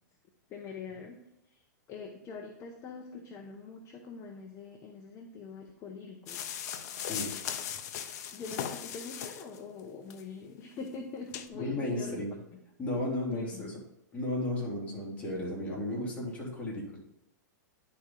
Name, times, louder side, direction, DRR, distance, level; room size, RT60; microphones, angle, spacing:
voice 1, 0.5-1.2 1.4-6.5 8.3-12.2 13.3-13.7, left 4 dB, 30° left, 3 dB, 0.9 m, -44 dB
sound 1, 6.3-9.6 10.1-10.2 10.8-10.9 11.3-11.5, left 9 dB, 60° left, 0.7 m, -38 dB
voice 2, 11.5-12.3 12.8-13.8 14.1-17.0, left 1 dB, 15° left, -5 dB, 2.9 m, -34 dB
10.0 x 4.3 x 3.8 m, 0.86 s
hypercardioid pair, 115°, 10 cm